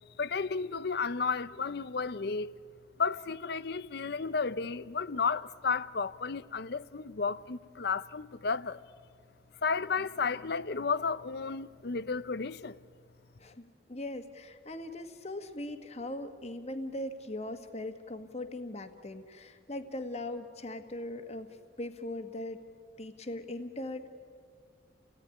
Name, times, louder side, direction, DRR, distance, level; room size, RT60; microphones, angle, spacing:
voice 1, 0.2-2.5 3.0-8.8 9.6-12.8, left 5 dB, 60° left, 0.6 m, -32 dB
voice 2, 13.4-22.6 23.0-24.1, left 1 dB, 35° left, 1.5 m, -40 dB
30.0 x 17.5 x 9.8 m
head